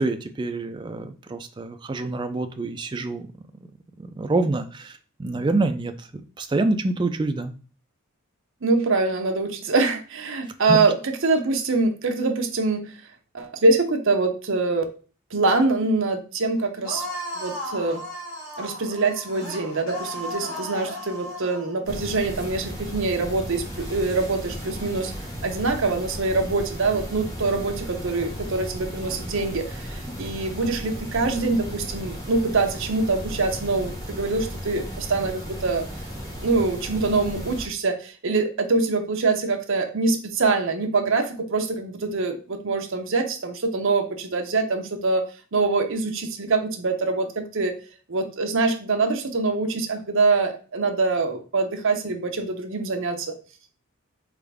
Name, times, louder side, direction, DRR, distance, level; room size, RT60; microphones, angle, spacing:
voice 1, 0.0-3.3 4.0-5.9 6.4-7.5 10.7-10.8, right 2 dB, 20° right, 6 dB, 0.3 m, -26 dB
voice 2, 8.6-13.0 13.3-14.8 15.3-17.0 17.4-18.0 18.6-25.1 25.4-35.9 36.4-45.2 45.5-47.7 48.1-53.3, right 3 dB, 55° right, 5 dB, 0.8 m, -24 dB
sound 1, 16.8-21.7, equal, 70° left, 2.0 m, -35 dB
sound 2, 21.8-37.7, equal, 15° left, 1.3 m, -35 dB
4.2 x 3.6 x 3.4 m, 0.37 s
head